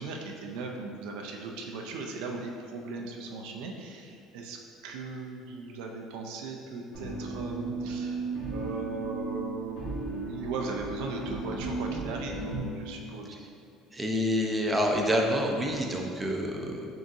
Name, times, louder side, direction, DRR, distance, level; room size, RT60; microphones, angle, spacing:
voice 1, 0.0-12.5 12.7-13.4, right 3 dB, 80° right, 2 dB, 0.3 m, -38 dB
sound 1, 6.9-12.6, right 3 dB, 90° left, 1.3 m, -35 dB
voice 2, 13.9-16.9, equal, 15° right, 1 dB, 0.5 m, -27 dB
3.9 x 3.5 x 2.5 m, 2.5 s
supercardioid pair, 90°, 0 cm